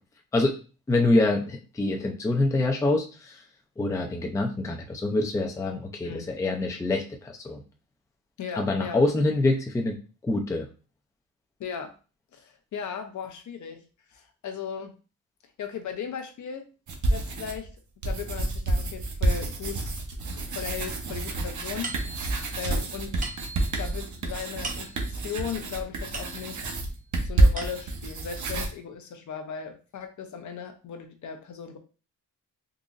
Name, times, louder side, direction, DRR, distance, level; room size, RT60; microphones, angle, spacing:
voice 1, 0.9-3.4 3.8-7.6 8.6-10.7, left 2 dB, 10° left, 2 dB, 0.4 m, -25 dB
voice 2, 8.4-9.0 11.6-12.0 12.3-13.8 14.1-14.9 15.6-16.7 17.1-17.8 18.0-19.9 20.5-22.3 22.6-23.2 23.7-26.7 27.2-31.8, left 7 dB, 60° left, 6 dB, 0.6 m, -37 dB
sound 1, 16.9-17.7 18.0-28.7, right 2 dB, 60° right, 0.8 m, -28 dB
sound 2, 21.8-26.8 27.3-28.2, right 2 dB, 25° right, 0.7 m, -41 dB
3.8 x 2.9 x 2.5 m, 0.34 s
wide cardioid pair, 175°, 34 cm